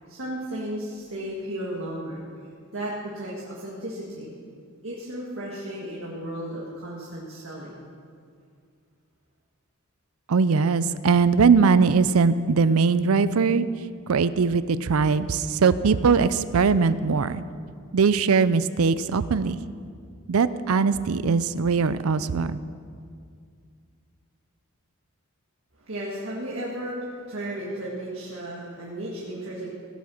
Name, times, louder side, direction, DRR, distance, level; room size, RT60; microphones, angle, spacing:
voice 1, 0.1-2.2 2.7-4.3 4.8-7.8 25.8-29.7, right 1 dB, 65° right, -5 dB, 1.8 m, -34 dB
voice 2, 10.3-13.7 14.1-17.4 17.9-19.6 20.3-22.6, right 5 dB, 80° right, 15 dB, 0.5 m, -21 dB
16.0 x 8.5 x 6.3 m, 2.2 s
head